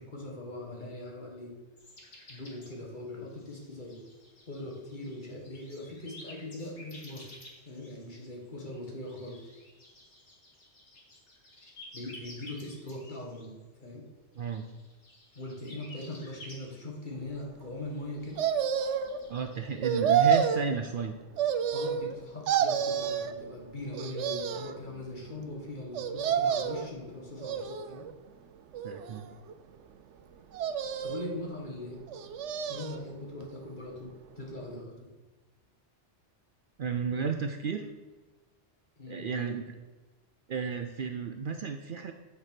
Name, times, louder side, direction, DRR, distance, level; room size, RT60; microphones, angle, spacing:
voice 1, 0.0-1.5 2.3-4.0 4.5-7.4 7.7-9.5 11.9-13.6 13.8-14.0 15.4-18.4 21.7-28.1 31.0-32.0 32.7-35.1 39.0-39.5, left 1 dB, 45° left, -1 dB, 1.9 m, -41 dB
sound 1, 1.8-2.8 3.3-8.2 9.0-13.5 13.8-13.9 14.3-17.1 17.4-17.5 18.2-20.2, left 1 dB, 75° left, 2.2 m, -52 dB
voice 2, 14.4-14.7 19.3-21.2 28.8-29.3 36.8-37.9 39.1-39.7 40.5-42.1, right 6 dB, 55° right, 6 dB, 0.6 m, -33 dB
sound 2, 18.4-19.2 19.8-20.6 21.4-22.2 22.5-23.3 23.9-24.8 25.9-26.9 27.4-28.1 28.7-29.5 30.5-31.4 32.1-33.0 33.4-33.5, right 8 dB, 80° right, 0.9 m, -29 dB
9.1 x 4.6 x 6.0 m, 1.2 s
omnidirectional pair, 1.2 m